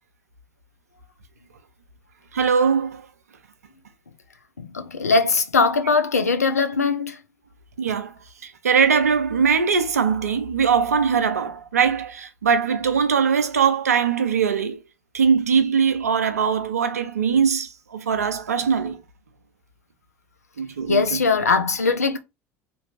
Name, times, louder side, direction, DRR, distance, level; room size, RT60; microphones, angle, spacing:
voice 1, 2.3-3.1 7.8-8.1 8.4-14.8 15.1-19.0 20.6-21.2, right 6 dB, 85° right, 0.4 m, -21 dB
voice 2, 4.6-7.2 20.9-22.2, left 4 dB, 85° left, 0.4 m, -21 dB
2.6 x 2.6 x 2.4 m
figure-of-eight pair, 70°, 8 cm